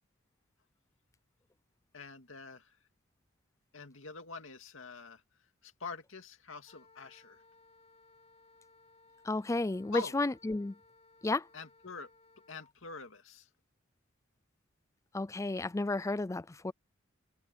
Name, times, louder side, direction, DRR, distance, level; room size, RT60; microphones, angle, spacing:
voice 1, 1.9-2.8 3.7-5.2 5.6-7.4 9.9-10.1 11.5-12.1 12.5-13.5, left 4 dB, 80° left, 2.3 m, -45 dB
Wind instrument woodwind instrument, 6.6-12.7, left 3 dB, 35° left, 5.7 m, -63 dB
voice 2, 9.3-10.7 11.2-11.4 15.1-16.7, left 2 dB, 15° left, 0.4 m, -32 dB
head